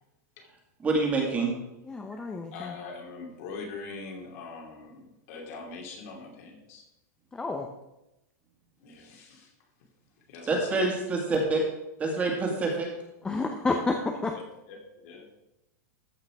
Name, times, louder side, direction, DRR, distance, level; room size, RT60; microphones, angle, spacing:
voice 1, 0.8-1.5 10.5-11.6 12.0-12.9, right 3 dB, 15° right, 0 dB, 2.0 m, -26 dB
voice 2, 1.9-2.7 7.3-7.7 13.2-14.4, left 3 dB, 10° left, 3 dB, 0.6 m, -30 dB
voice 3, 2.5-6.8 8.8-9.5 10.3-10.9 14.7-15.3, left 4 dB, 50° left, 1 dB, 2.8 m, -42 dB
14.0 x 5.7 x 4.7 m, 0.92 s
supercardioid pair, 160°, 10 cm